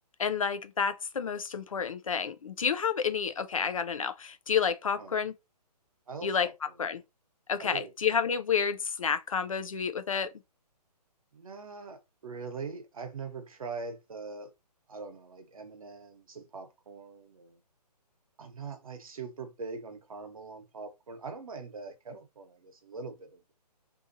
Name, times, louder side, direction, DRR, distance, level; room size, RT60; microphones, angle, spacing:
voice 1, 0.2-5.3 6.2-6.5 6.8-7.0 7.5-10.3, left 6 dB, 55° left, 0.4 m, -30 dB
voice 2, 6.1-6.5 7.6-7.9 11.3-14.5 14.9-17.6 18.4-23.5, right 4 dB, 55° right, 1.0 m, -42 dB
3.7 x 2.8 x 2.6 m
hypercardioid pair, 175°, 21 cm